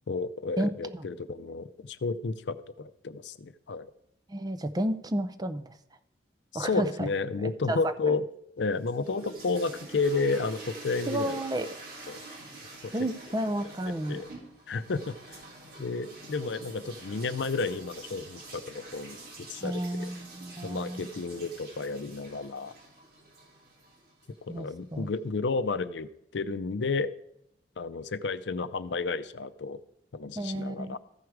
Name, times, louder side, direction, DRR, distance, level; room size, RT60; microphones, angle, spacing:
voice 1, 0.1-3.9 6.5-8.2 8.6-11.4 12.1-12.2 12.8-12.9 14.1-14.3 14.7-15.4 15.8-20.1 20.6-22.7 24.5-27.1 27.8-29.8 30.1-31.0, left 4 dB, 80° left, 13 dB, 0.5 m, -32 dB
voice 2, 0.6-1.1 4.3-5.7 6.5-7.1 7.4-7.8 8.1-8.2 11.1-11.7 12.9-14.2 19.6-21.1 24.5-25.1 30.4-31.0, right 1 dB, 20° right, 10 dB, 0.5 m, -32 dB
sound 1, 8.7-24.7, right 2 dB, 60° right, 3.1 m, -47 dB
14.0 x 4.9 x 4.7 m, 0.76 s
head